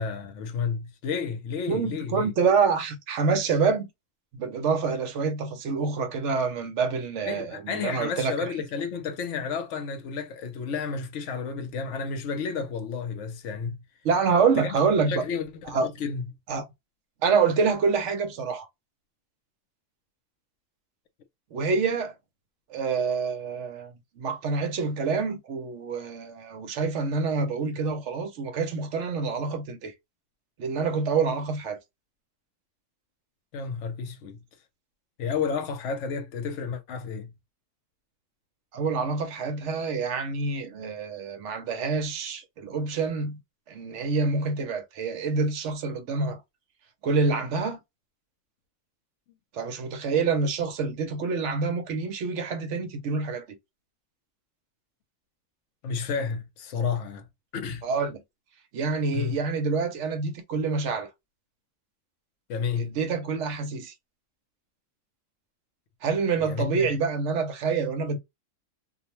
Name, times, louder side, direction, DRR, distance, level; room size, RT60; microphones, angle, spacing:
voice 1, 0.0-2.3 7.2-13.8 14.5-14.8 15.1-16.2 33.5-34.4 35.2-37.3 55.8-57.3 57.5-57.8 59.1-59.4 62.5-63.0 66.4-66.9, left 5 dB, 75° left, 0.9 m, -31 dB
voice 2, 1.7-3.9 4.3-8.3 14.0-15.2 15.6-15.9 16.5-16.6 17.2-18.7 21.5-22.1 22.7-29.9 30.6-31.8 38.7-43.4 43.7-46.4 47.0-47.8 49.5-53.4 57.8-58.2 58.7-61.1 62.7-63.9 66.0-68.2, right 5 dB, 70° right, 0.9 m, -27 dB
2.5 x 2.1 x 2.9 m
omnidirectional pair, 1.3 m